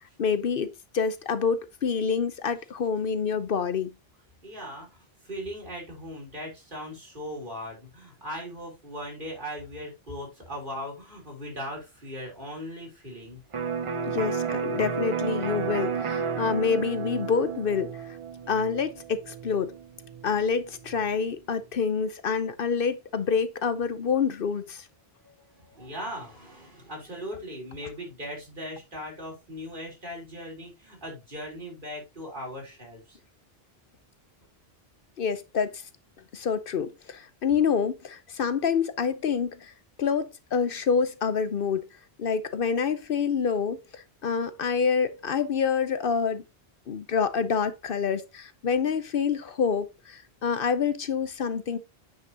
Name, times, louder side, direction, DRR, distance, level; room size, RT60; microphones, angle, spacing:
voice 1, 0.2-3.9 14.1-18.2 18.5-19.7 20.2-24.9 35.2-35.8 36.3-39.7 40.0-41.8 42.2-46.4 46.9-51.8, left 6 dB, 65° left, 0.9 m, -27 dB
voice 2, 4.4-13.4 25.2-33.2, equal, 55° right, 3.7 m, -39 dB
Electric guitar, 13.5-21.2, right 6 dB, 40° right, 0.5 m, -32 dB
9.2 x 5.7 x 2.8 m
omnidirectional pair, 1.0 m